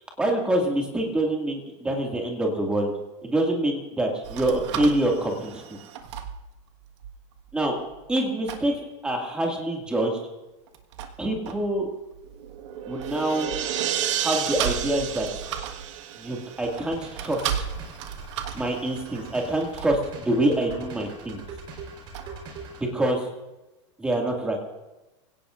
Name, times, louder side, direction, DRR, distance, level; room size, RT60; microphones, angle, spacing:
voice 1, 0.2-2.9 3.2-5.8 7.5-7.8 8.1-10.1 11.2-11.9 12.9-13.5 14.1-15.4 16.2-17.4 18.5-21.4 22.9-23.3 24.0-24.6, right 1 dB, 5° right, 0 dB, 2.1 m, -26 dB
sound 1, 4.2-8.2 8.5-8.7 10.7-13.9 14.3-22.6, right 8 dB, 65° right, 1.6 m, -37 dB
sound 2, 12.3-16.9, right 10 dB, 80° right, 1.6 m, -31 dB
sound 3, 16.6-22.8, right 3 dB, 35° right, 4.1 m, -43 dB
26.0 x 17.0 x 2.5 m, 1.1 s
supercardioid pair, 170°, 16 cm